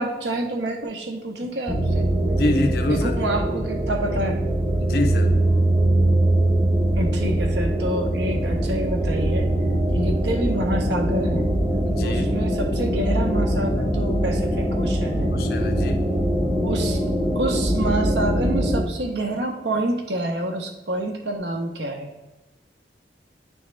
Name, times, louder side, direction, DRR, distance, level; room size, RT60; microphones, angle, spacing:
voice 1, 0.0-2.1 2.9-4.4 7.0-9.5 9.9-11.5 12.0-15.3 16.6-17.0 17.3-22.1, right 1 dB, 75° right, 3 dB, 0.8 m, -28 dB
sound 1, 1.7-18.8, right 1 dB, 5° right, 0.8 m, -22 dB
voice 2, 2.3-3.1 4.8-5.3 11.9-12.3 15.3-16.1, left 2 dB, 60° left, 4 dB, 0.4 m, -25 dB
9.1 x 3.5 x 3.2 m, 1.1 s
head